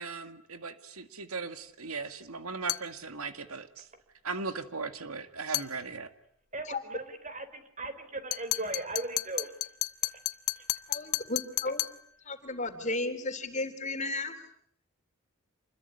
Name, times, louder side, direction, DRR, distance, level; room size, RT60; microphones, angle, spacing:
voice 1, 0.0-3.9 4.2-6.1, right 4 dB, 85° right, 10 dB, 2.1 m, -38 dB
sound 1, 2.7-2.9 5.5-5.7 8.3-12.0, left 14 dB, 90° left, 1.2 m, -33 dB
voice 2, 6.5-9.6 10.0-10.2 10.6-10.7, right 2 dB, 35° right, 10 dB, 4.5 m, -38 dB
voice 3, 10.9-11.8 12.3-14.3, left 2 dB, 35° left, 7 dB, 3.6 m, -34 dB
28.0 x 21.5 x 9.9 m, 0.68 s
head